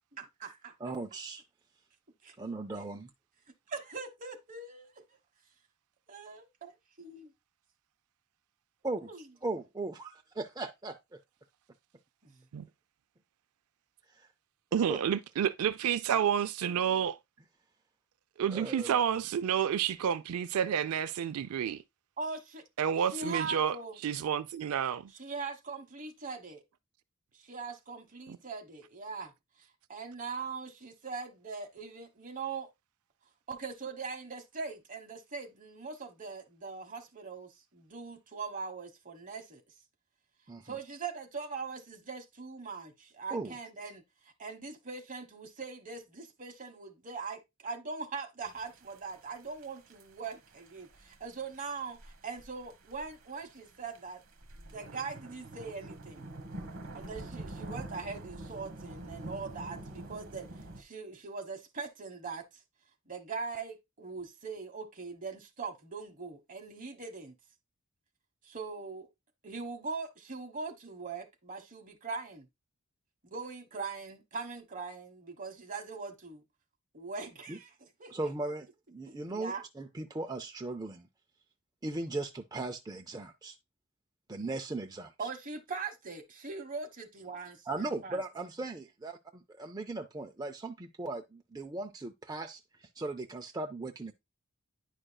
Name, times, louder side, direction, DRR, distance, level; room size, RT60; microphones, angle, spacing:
voice 1, 0.2-0.7 2.2-2.3 3.7-5.0 6.1-6.7 7.0-7.3 9.0-9.2 12.2-12.4 22.2-22.6 23.1-24.0 25.1-26.6 27.3-29.3 29.9-32.7 33.5-39.6 40.6-44.0 44.4-54.2 54.6-56.3 56.9-60.5 60.8-62.5 63.1-67.3 68.4-69.1 69.4-72.5 73.2-76.4 76.9-77.7 78.0-78.1 79.3-79.6 85.2-88.2, right 4 dB, 35° right, 1.1 m, -41 dB
voice 2, 0.8-1.4 2.4-3.1 8.8-9.1 9.4-11.2 14.1-14.3 14.8-15.0 18.5-19.2 40.5-40.8 43.3-43.6 77.5-77.6 78.1-81.1 81.8-83.6 84.3-85.3 87.7-94.1, right 2 dB, 20° right, 0.4 m, -38 dB
voice 3, 14.7-17.2 18.4-21.8 22.8-23.8 24.0-25.1 28.3-28.4, right 8 dB, 80° right, 0.4 m, -30 dB
sound 1, 48.4-60.8, right 1 dB, 65° right, 1.2 m, -46 dB
9.9 x 5.0 x 2.2 m
head